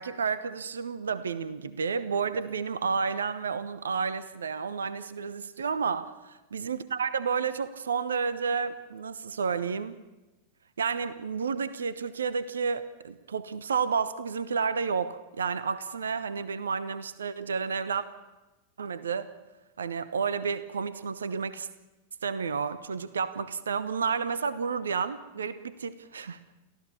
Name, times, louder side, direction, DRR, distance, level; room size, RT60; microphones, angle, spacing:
voice 1, 0.0-10.0 10.8-18.1 18.8-19.3 19.8-21.7 22.2-26.4, right 5 dB, 70° right, 15 dB, 1.0 m, -31 dB
29.5 x 14.5 x 7.0 m, 1.1 s
figure-of-eight pair, 90°, 0 cm